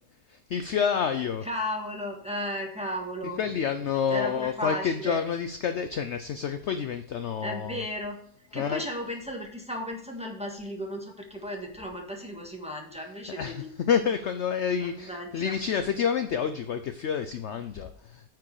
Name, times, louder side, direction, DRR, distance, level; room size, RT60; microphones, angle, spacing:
voice 1, 0.3-1.5 3.4-7.8 8.5-8.8 13.3-18.2, left 7 dB, 60° left, 9 dB, 0.8 m, -28 dB
voice 2, 1.4-3.4 4.1-5.2 7.4-8.2 8.5-13.7 14.8-15.6, equal, 5° right, 0 dB, 1.5 m, -35 dB
9.3 x 4.9 x 4.8 m, 0.67 s
omnidirectional pair, 1.6 m